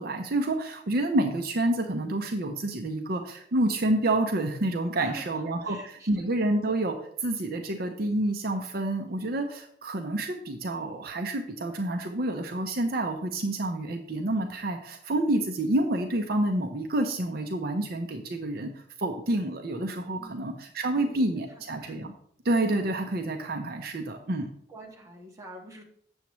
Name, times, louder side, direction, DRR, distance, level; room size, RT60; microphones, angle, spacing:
voice 1, 0.0-22.1 22.4-24.5, right 1 dB, 60° right, 5 dB, 0.7 m, -28 dB
voice 2, 5.0-6.4 20.2-20.5 20.9-22.0 24.7-25.8, right 1 dB, 20° right, -1 dB, 1.5 m, -48 dB
8.1 x 7.1 x 3.1 m, 0.64 s
head